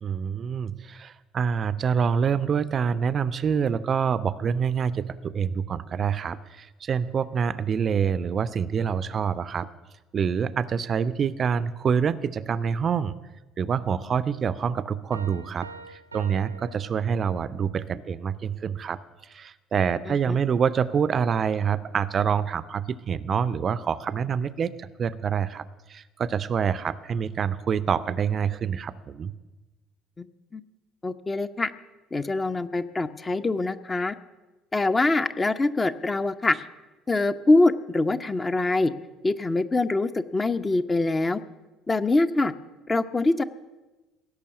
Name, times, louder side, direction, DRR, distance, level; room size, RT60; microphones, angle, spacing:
voice 1, 0.0-9.7 10.1-13.2 13.6-19.0 19.3-25.6 25.9-29.3, right 7 dB, 40° right, 14 dB, 0.5 m, -26 dB
Piano, 15.1-17.6, right 4 dB, 90° right, 0.9 m, -45 dB
voice 2, 20.1-20.4 30.2-30.3 30.5-30.6 31.0-31.7 32.1-34.2 34.7-36.6 37.1-38.9 39.2-41.4 41.9-42.5 42.9-43.4, left 2 dB, 20° left, 10 dB, 0.7 m, -24 dB
17.0 x 6.9 x 9.7 m, 1.1 s
figure-of-eight pair, 55°, 0 cm